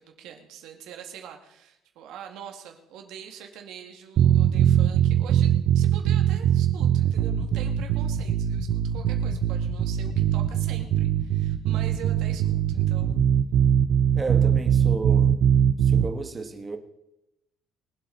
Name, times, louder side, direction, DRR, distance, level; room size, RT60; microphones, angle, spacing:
voice 1, 0.0-13.2, right 8 dB, 65° right, 2.1 m, -43 dB
sound 1, 4.2-16.1, right 9 dB, 45° right, 0.6 m, -22 dB
voice 2, 14.1-15.4 15.8-16.8, right 3 dB, 15° right, 1.2 m, -33 dB
23.0 x 8.3 x 4.1 m
cardioid pair, 170°, 0 cm